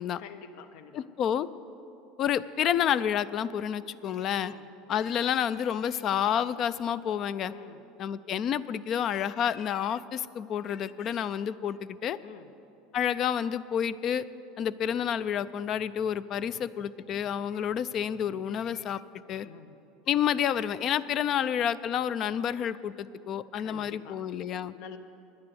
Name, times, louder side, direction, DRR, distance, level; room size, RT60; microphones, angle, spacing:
voice 1, 0.2-1.1 4.4-4.7 7.5-7.8 12.2-12.5 19.4-19.8 23.6-24.3 24.7-25.0, left 7 dB, 65° left, 10 dB, 0.8 m, -47 dB
voice 2, 0.9-1.5 2.2-4.5 4.9-7.5 8.0-12.2 12.9-14.2 14.6-19.0 19.3-19.5 20.1-24.7, left 9 dB, 40° left, 17 dB, 0.3 m, -29 dB
10.0 x 9.6 x 7.9 m, 2.8 s
supercardioid pair, 140°, 0 cm